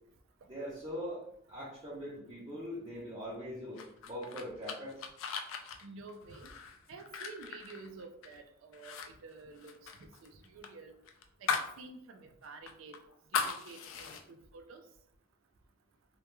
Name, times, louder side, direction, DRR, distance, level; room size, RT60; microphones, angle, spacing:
voice 1, 0.5-1.2 1.5-5.0, equal, 20° right, -7 dB, 0.5 m, -41 dB
sound 1, 3.8-8.4 8.7-9.1 9.3-11.8 12.1-12.2 12.7-14.2, left 6 dB, 80° left, 0.3 m, -38 dB
voice 2, 5.8-6.5 6.9-10.9 11.4-11.5 11.8-13.0 13.3-14.8, right 3 dB, 80° right, 6 dB, 0.4 m, -50 dB
2.2 x 2.2 x 2.9 m, 0.69 s
head